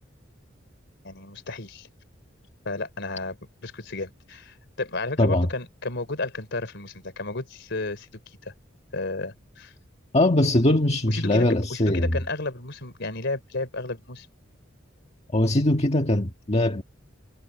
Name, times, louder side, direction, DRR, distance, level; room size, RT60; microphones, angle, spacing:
voice 1, 1.0-1.9 2.7-3.4 3.6-8.1 8.4-8.5 8.9-9.7 11.1-14.3, left 2 dB, 65° left, 3.6 m, -32 dB
voice 2, 10.1-12.1 15.3-16.8, left 1 dB, 35° left, 1.6 m, -21 dB
head